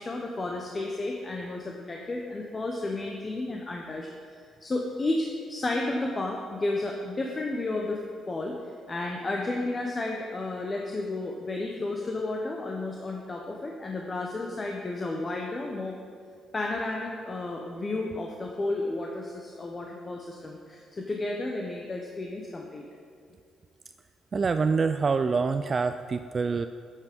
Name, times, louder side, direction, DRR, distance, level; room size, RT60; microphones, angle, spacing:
voice 1, 0.0-8.0 8.3-8.6 8.9-16.0 16.5-22.8, left 2 dB, 30° left, 0 dB, 1.0 m, -32 dB
voice 2, 24.3-26.7, right 4 dB, 40° right, 9 dB, 0.3 m, -26 dB
8.6 x 8.4 x 5.3 m, 2.2 s
cardioid pair, 90°, 0 cm